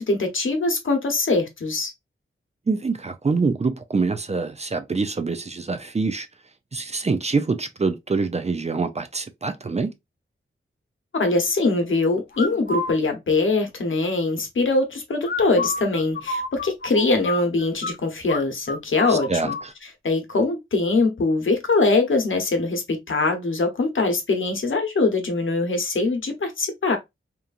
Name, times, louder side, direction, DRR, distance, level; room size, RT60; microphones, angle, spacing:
voice 1, 0.0-1.9 11.1-19.6 20.0-27.0, left 3 dB, 70° left, 0.9 m, -22 dB
voice 2, 2.7-6.3 6.7-9.9 19.1-19.7, right 4 dB, 30° right, 0.4 m, -25 dB
sound 1, 12.3-12.9 15.2-17.9 18.3-18.4 18.7-19.7, left 3 dB, 50° left, 0.5 m, -29 dB
2.9 x 2.4 x 2.4 m
wide cardioid pair, 75°, 21 cm